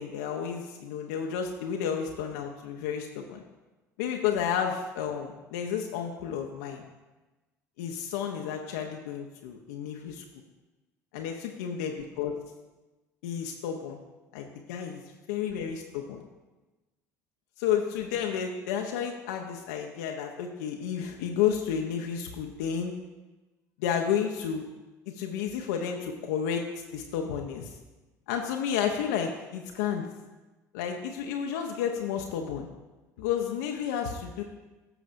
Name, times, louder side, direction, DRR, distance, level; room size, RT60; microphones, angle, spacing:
voice 1, 0.0-3.4 4.0-6.8 7.8-10.2 11.1-12.4 13.2-14.0 14.3-15.0 15.3-16.2 17.6-22.9 23.8-24.6 25.1-26.7 26.9-27.7 28.3-30.1 30.7-32.7 33.2-34.4, left 8 dB, 70° left, 2 dB, 0.7 m, -31 dB
14.0 x 6.0 x 2.6 m, 1.1 s
figure-of-eight pair, 60°, 9 cm